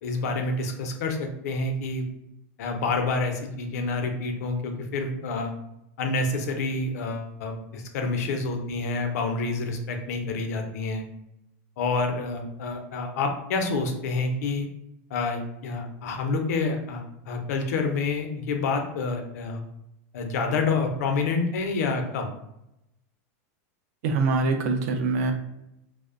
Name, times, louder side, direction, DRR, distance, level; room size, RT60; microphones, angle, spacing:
voice 1, 0.0-2.1 2.6-5.5 6.0-11.0 11.8-14.7 15.1-19.6 20.1-22.3, left 3 dB, 80° left, 4 dB, 0.5 m, -28 dB
voice 2, 24.0-25.3, right 3 dB, 70° right, 5 dB, 0.4 m, -24 dB
2.5 x 2.0 x 2.4 m, 0.84 s
supercardioid pair, 145°, 8 cm